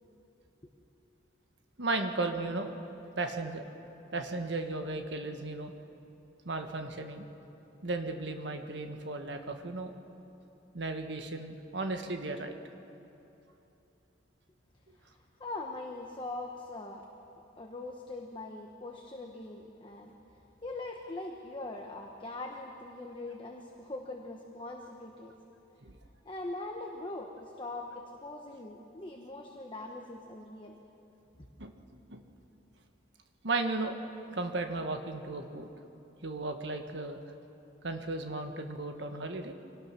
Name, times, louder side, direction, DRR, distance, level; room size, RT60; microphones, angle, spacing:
voice 1, 1.8-2.8 3.2-3.6 4.1-5.7 6.4-7.3 7.8-9.9 10.7-12.5 25.8-25.9 31.6-31.7 32.1-32.2 33.4-33.9 34.3-35.7 36.2-37.2 37.8-39.5, right 2 dB, 65° right, 5 dB, 1.5 m, -35 dB
voice 2, 15.4-17.0 17.6-20.1 20.6-25.3 26.2-30.8, left 2 dB, 25° left, 1 dB, 1.2 m, -41 dB
25.5 x 18.5 x 6.0 m, 3.0 s
head